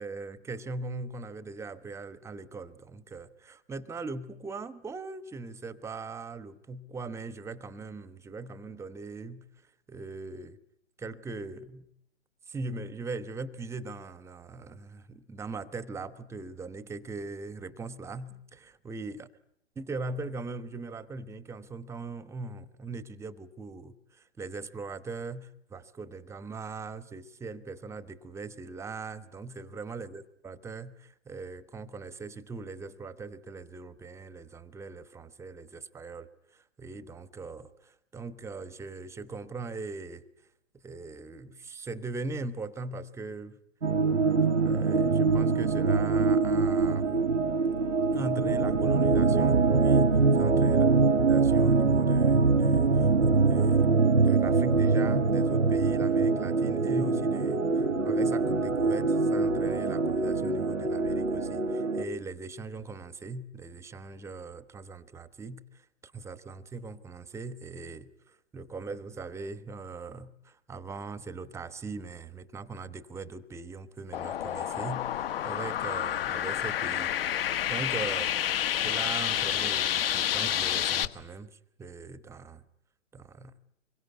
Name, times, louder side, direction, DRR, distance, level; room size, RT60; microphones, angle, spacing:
voice 1, 0.0-9.5 9.9-10.6 11.0-11.9 12.5-19.3 19.8-40.2 40.8-43.6 44.6-47.1 48.1-50.9 51.2-53.9 54.2-77.1 77.4-78.3 78.8-82.6 83.1-83.5, right 3 dB, 5° right, 1.0 m, -40 dB
sound 1, 43.8-62.1, right 4 dB, 80° right, 1.3 m, -24 dB
sound 2, 74.1-81.1, left 10 dB, 50° left, 1.5 m, -29 dB
26.0 x 23.0 x 9.3 m
figure-of-eight pair, 115°, 37 cm